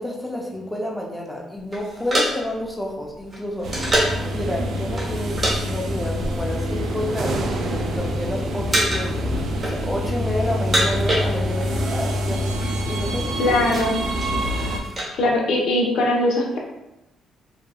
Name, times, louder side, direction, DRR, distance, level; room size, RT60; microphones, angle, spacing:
voice 1, 0.0-3.9 4.3-12.6 12.9-13.6, left 1 dB, 10° left, -1 dB, 0.5 m, -30 dB
sound 1, 1.7-4.3 5.0-5.6 5.8-6.0 6.7-7.5 7.8-8.2 8.7-9.2 9.5-10.1 10.5-11.8 12.0-12.1 12.3-12.7 13.2-15.1, right 1 dB, 30° right, 1.1 m, -26 dB
sound 2, 3.6-14.8, equal, 70° right, 0.4 m, -26 dB
voice 2, 13.4-14.0 15.2-16.6, left 1 dB, 75° left, -1 dB, 0.5 m, -20 dB
2.8 x 2.2 x 2.3 m, 0.92 s
cardioid pair, 90°, 0 cm